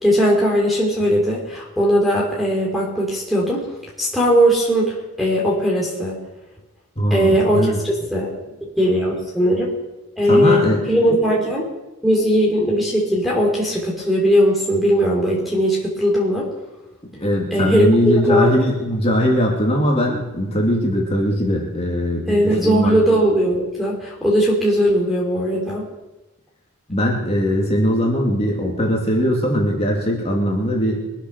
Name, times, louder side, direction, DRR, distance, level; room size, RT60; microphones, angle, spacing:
voice 1, 0.0-3.6 4.0-6.2 7.1-8.3 8.8-9.7 10.2-11.7 12.0-16.5 17.5-18.5 22.2-25.8, equal, ahead, -3 dB, 3.2 m, -18 dB
voice 2, 7.0-7.8 10.3-10.8 17.2-22.9 26.9-31.0, equal, 30° left, -1 dB, 2.8 m, -20 dB
23.5 x 8.1 x 6.5 m, 1.0 s
head